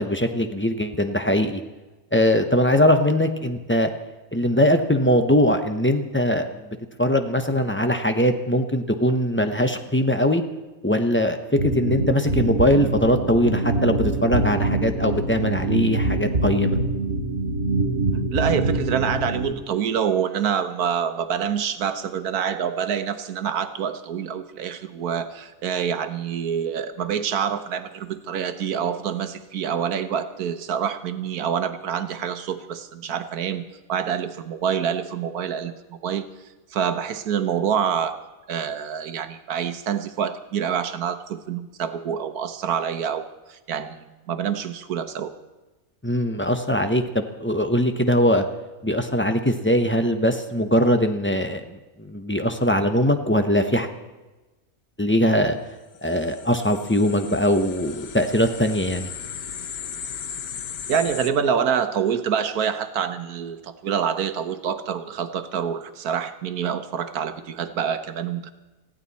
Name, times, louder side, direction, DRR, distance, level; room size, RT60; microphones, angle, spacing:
voice 1, 0.0-1.6 2.1-3.9 4.3-6.5 7.0-10.4 10.8-16.8 46.0-48.4 48.8-53.9 55.0-55.6 56.0-59.1, equal, 10° left, 7 dB, 0.7 m, -21 dB
sound 1, 11.6-19.5, right 2 dB, 45° right, 3.4 m, -24 dB
voice 2, 18.3-33.6 33.9-36.2 36.7-38.2 38.5-45.3 60.9-68.5, right 8 dB, 85° right, 10 dB, 1.5 m, -26 dB
sound 2, 56.0-61.3, left 7 dB, 85° left, 1.4 m, -36 dB
20.5 x 15.5 x 4.2 m, 1.1 s
omnidirectional pair, 1.5 m